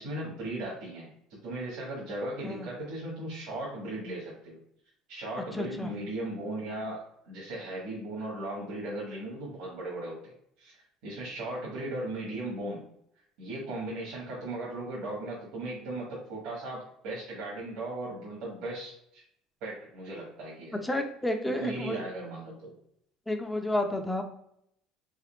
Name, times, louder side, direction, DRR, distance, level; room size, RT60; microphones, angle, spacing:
voice 1, 0.0-4.6 5.1-10.8 11.0-12.9 13.4-19.2 19.6-20.8 21.6-22.7, right 2 dB, 75° right, -6 dB, 1.2 m, -37 dB
voice 2, 5.5-5.9 20.8-22.0 23.3-24.2, left 1 dB, 5° left, 5 dB, 0.4 m, -31 dB
3.6 x 3.5 x 2.2 m, 0.72 s
cardioid pair, 135°, 0 cm